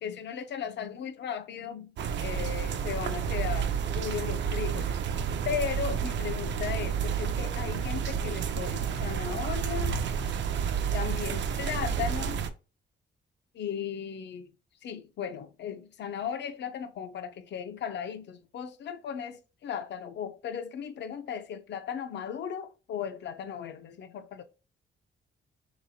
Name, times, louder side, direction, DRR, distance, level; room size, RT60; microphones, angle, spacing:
voice 1, 0.0-1.9 2.2-10.0 10.9-12.5 13.5-14.5 14.8-24.4, left 8 dB, 60° left, 0.5 m, -36 dB
sound 1, 2.0-12.5, right 7 dB, 65° right, 0.4 m, -30 dB
4.0 x 3.0 x 2.7 m
cardioid pair, 130°, 21 cm